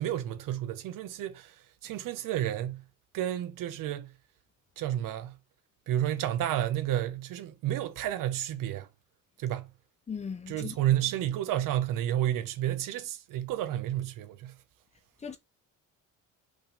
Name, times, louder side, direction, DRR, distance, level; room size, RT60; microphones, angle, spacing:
voice 1, 0.0-2.8 3.1-4.1 4.8-5.4 5.9-8.9 9.4-9.7 10.5-14.6, right 12 dB, 70° right, 0.9 m, -31 dB
voice 2, 10.1-10.8 15.2-15.4, left 6 dB, 20° left, 0.6 m, -37 dB
5.3 x 3.5 x 5.0 m
cardioid pair, 170°, 34 cm